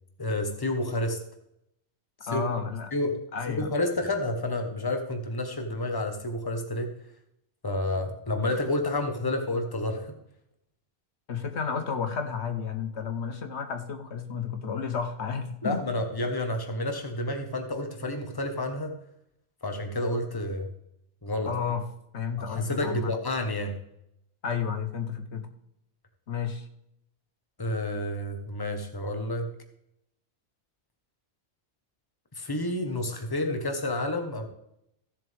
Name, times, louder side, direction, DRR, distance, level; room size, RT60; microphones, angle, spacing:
voice 1, 0.2-1.2 2.2-2.4 2.9-3.2 3.5-6.9 7.6-10.1 15.6-18.9 19.6-20.7 21.2-21.5 22.4-23.8 27.6-29.5 32.3-34.5, left 1 dB, 20° left, 5 dB, 1.3 m, -30 dB
voice 2, 2.3-2.9 3.3-3.7 11.3-15.8 21.4-21.8 22.1-23.1 24.4-25.5 26.3-26.7, left 6 dB, 75° left, 6 dB, 1.4 m, -32 dB
16.0 x 7.4 x 3.5 m, 0.79 s
omnidirectional pair, 1.2 m